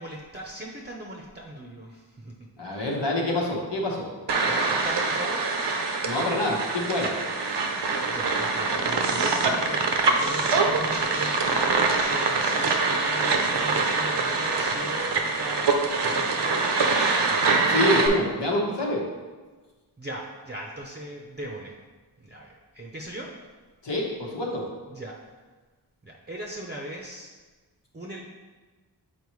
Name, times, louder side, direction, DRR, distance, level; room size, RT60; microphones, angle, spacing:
voice 1, 0.0-2.3 4.4-5.5 8.0-17.4 20.0-21.8 22.2-23.3 24.9-25.2 26.0-27.3 27.9-28.2, right 1 dB, 25° right, -1 dB, 0.6 m, -38 dB
voice 2, 2.6-4.1 6.0-7.1 17.7-19.0 23.8-24.7, left 1 dB, 85° left, -2 dB, 1.2 m, -26 dB
sound 1, 4.3-18.1, right 3 dB, 75° right, 0.7 m, -24 dB
6.9 x 4.3 x 3.1 m, 1.3 s
wide cardioid pair, 80°, 41 cm